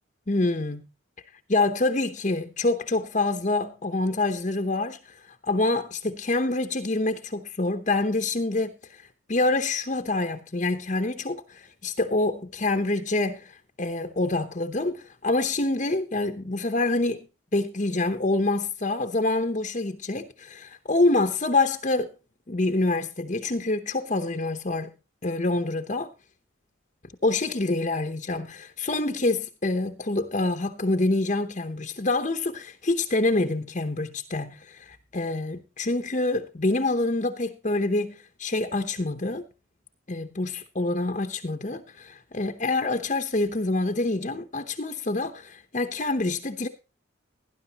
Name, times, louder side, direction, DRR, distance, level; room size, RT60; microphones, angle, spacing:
voice 1, 0.3-0.9 1.5-17.3 17.5-22.1 22.5-24.9 25.2-26.1 27.2-39.4 40.1-46.7, left 2 dB, 40° left, 0.9 m, -26 dB
18.0 x 11.0 x 2.9 m
head